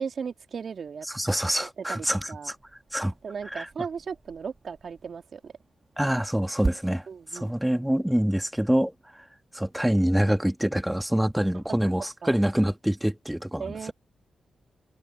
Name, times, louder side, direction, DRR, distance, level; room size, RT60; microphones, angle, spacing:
voice 1, 0.0-1.1 1.8-2.5 3.2-5.5 7.1-7.5 11.8-11.9 12.2-12.4 13.6-13.9, right 6 dB, 65° right, 2.6 m, -36 dB
voice 2, 1.1-2.6 2.9-3.1 3.5-3.7 6.0-7.0 7.3-8.9 9.5-13.9, equal, 5° right, 1.9 m, -25 dB
sound 1, 2.5-7.5, right 3 dB, 35° right, 2.7 m, -39 dB
supercardioid pair, 45°, 0 cm